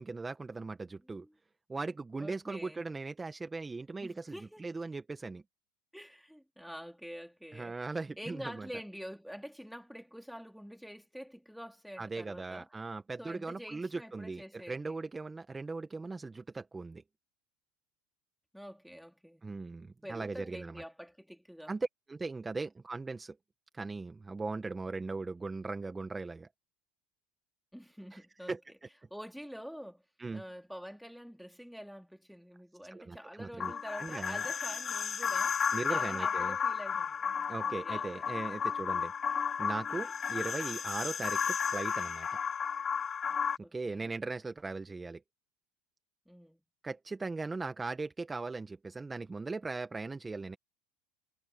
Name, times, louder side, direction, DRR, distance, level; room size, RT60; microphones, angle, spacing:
voice 1, 0.0-1.3 1.7-5.4 7.5-8.7 12.0-17.0 19.4-20.8 21.7-23.4 23.7-26.5 28.1-28.6 30.2-30.4 32.9-34.4 35.7-36.5 37.5-39.1 39.6-42.4 43.6-45.2 46.8-50.6, right 3 dB, 15° right, 1.5 m, -39 dB
voice 2, 2.2-2.8 4.0-4.6 5.9-7.8 8.2-12.7 13.2-15.0 18.5-19.5 20.0-21.7 27.7-28.6 29.1-30.0 30.3-37.2 37.6-38.3 43.6-44.1 46.3-46.6, equal, ahead, 3.9 m, -47 dB
sound 1, 33.6-43.6, left 7 dB, 30° left, 2.4 m, -33 dB
hypercardioid pair, 95°, 0 cm